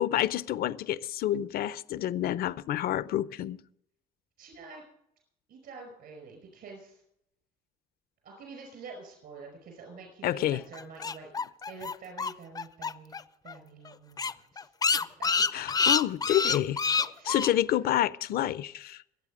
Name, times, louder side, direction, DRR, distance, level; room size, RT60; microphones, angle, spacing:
voice 1, 0.0-3.6 10.2-10.6 15.5-16.8 17.3-19.0, left 12 dB, 65° left, 0.6 m, -28 dB
voice 2, 4.4-4.8 5.5-7.0 8.2-11.3 11.7-13.1 13.4-14.7 15.0-15.5 15.7-15.9 16.3-16.4 16.9-17.4, right 4 dB, 65° right, 5.0 m, -47 dB
sound 1, 10.7-13.2 13.5-13.6 13.9-14.0 14.2-17.5, left 5 dB, 20° left, 0.5 m, -27 dB
22.0 x 8.1 x 5.0 m
cardioid pair, 110°, 17 cm